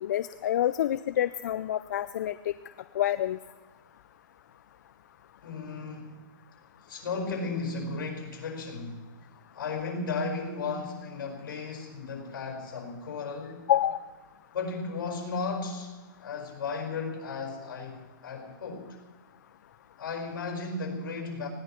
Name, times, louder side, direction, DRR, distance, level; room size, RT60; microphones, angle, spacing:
voice 1, 0.0-2.3 3.0-3.4 13.7-14.0, left 11 dB, 55° left, 0.5 m, -27 dB
voice 2, 5.4-6.3 6.8-9.1 9.5-13.7 14.5-15.9 16.2-19.0 20.0-21.5, left 4 dB, 70° left, 5.0 m, -35 dB
19.5 x 16.0 x 4.5 m
hypercardioid pair, 165°, 11 cm